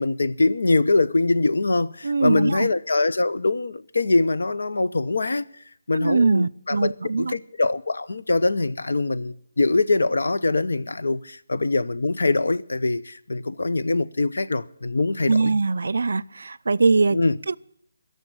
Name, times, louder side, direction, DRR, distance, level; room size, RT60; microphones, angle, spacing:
voice 1, 0.0-5.4 5.9-15.5 17.1-17.4, left 3 dB, 80° left, 0.8 m, -23 dB
voice 2, 2.0-2.7 5.9-7.3 15.3-17.2 17.5-17.6, right 4 dB, 70° right, 0.5 m, -22 dB
17.0 x 6.9 x 9.9 m
hypercardioid pair, 170°, 0 cm